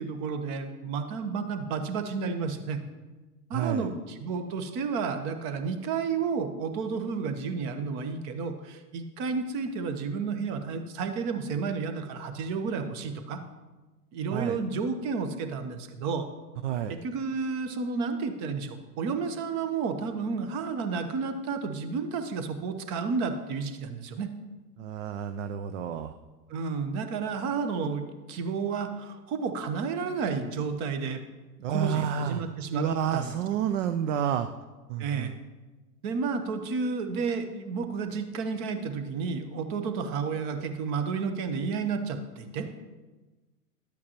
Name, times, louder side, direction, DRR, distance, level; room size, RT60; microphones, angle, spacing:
voice 1, 0.0-2.8 3.5-13.4 14.1-16.3 16.9-24.3 26.5-31.2 31.7-32.9 33.1-33.3 35.0-35.3 36.0-42.7, right 5 dB, 35° right, 8 dB, 0.9 m, -31 dB
voice 2, 3.5-3.9 14.3-14.6 16.6-17.0 24.8-26.1 31.6-32.4 32.7-34.5 34.9-35.3, right 9 dB, 50° right, 9 dB, 0.5 m, -29 dB
11.5 x 8.4 x 2.9 m, 1.2 s
hypercardioid pair, 105°, 48 cm